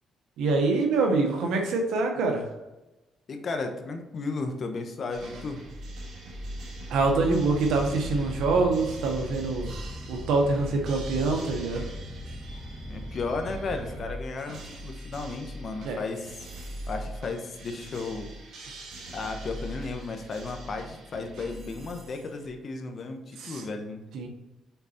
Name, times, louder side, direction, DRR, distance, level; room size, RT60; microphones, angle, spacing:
voice 1, 0.4-2.4 6.9-9.7 10.1-11.9 15.8-16.0 23.4-23.6 24.1-24.3, right 3 dB, 85° right, 2 dB, 1.2 m, -25 dB
voice 2, 3.3-5.6 12.9-16.5 16.9-18.3 19.1-24.0, left 3 dB, 50° left, 5 dB, 0.9 m, -34 dB
sound 1, 5.1-22.5, right 1 dB, 70° right, 1.9 m, -41 dB
sound 2, 6.9-14.1, equal, 15° right, 2.3 m, -39 dB
5.8 x 4.0 x 4.3 m, 1.0 s
cardioid pair, 90°, 0 cm